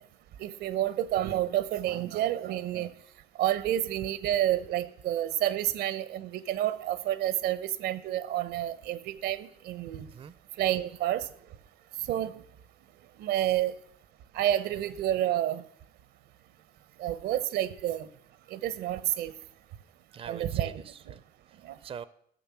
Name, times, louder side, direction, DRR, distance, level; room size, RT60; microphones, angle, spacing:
voice 1, 0.4-2.9 3.4-10.0 10.6-11.3 12.1-12.4 13.2-13.7 14.3-15.6 17.0-18.1 18.5-19.3 20.3-20.8 21.6-21.8, right 12 dB, 80° right, 0.9 m, -29 dB
voice 2, 10.0-10.3 20.1-21.2 21.5-22.1, right 7 dB, 35° right, 0.5 m, -44 dB
13.0 x 6.3 x 7.3 m
cardioid pair, 110°, 17 cm